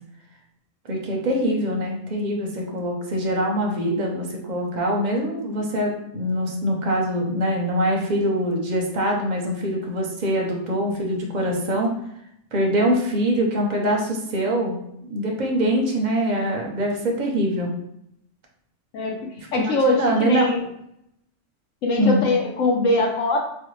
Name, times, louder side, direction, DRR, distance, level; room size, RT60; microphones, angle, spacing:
voice 1, 0.9-11.9 12.5-17.7 19.5-20.5 22.0-22.2, equal, 45° right, 0 dB, 0.6 m, -23 dB
voice 2, 19.5-20.6 21.8-23.4, left 2 dB, 80° left, 1 dB, 1.1 m, -21 dB
4.1 x 2.2 x 3.1 m, 0.76 s
omnidirectional pair, 1.3 m